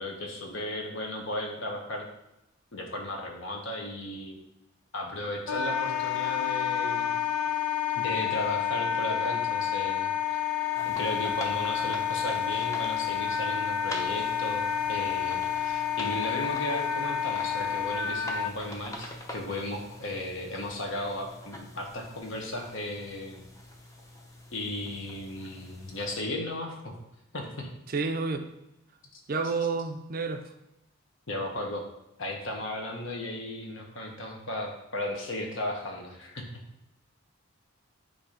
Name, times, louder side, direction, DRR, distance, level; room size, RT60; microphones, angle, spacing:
voice 1, 0.0-2.1 2.7-4.3 4.9-7.1 8.0-10.4 10.8-23.4 24.5-26.9 27.3-27.7 31.3-31.8 32.2-36.4, left 1 dB, 60° left, 1 dB, 1.2 m, -35 dB
Wind instrument woodwind instrument, 5.5-18.5, left 8 dB, 90° left, 0.4 m, -29 dB
sound 1, 10.7-26.2, left 1 dB, 15° left, 0.7 m, -45 dB
voice 2, 27.9-28.5 29.3-30.5, right 4 dB, 45° right, 7 dB, 0.5 m, -30 dB
8.4 x 2.8 x 5.0 m, 0.87 s
head